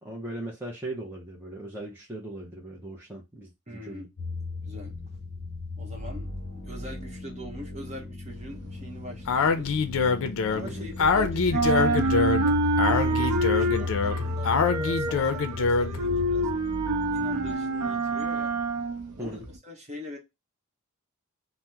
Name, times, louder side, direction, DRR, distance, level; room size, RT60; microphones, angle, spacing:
voice 1, 0.0-4.1 10.6-10.9 19.2-19.4, right 1 dB, 10° right, 0.6 m, -38 dB
voice 2, 3.7-4.1 4.6-4.9 5.8-9.8 10.5-12.5 12.9-16.5 17.1-18.5 19.2-20.2, left 1 dB, 30° right, 0.9 m, -42 dB
sound 1, 4.2-17.5, left 3 dB, 30° left, 0.8 m, -35 dB
sound 2, 8.3-11.1 11.4-19.6, right 2 dB, 80° right, 0.6 m, -28 dB
Speech, 9.3-16.0, left 4 dB, 65° left, 0.5 m, -25 dB
2.8 x 2.0 x 3.4 m
head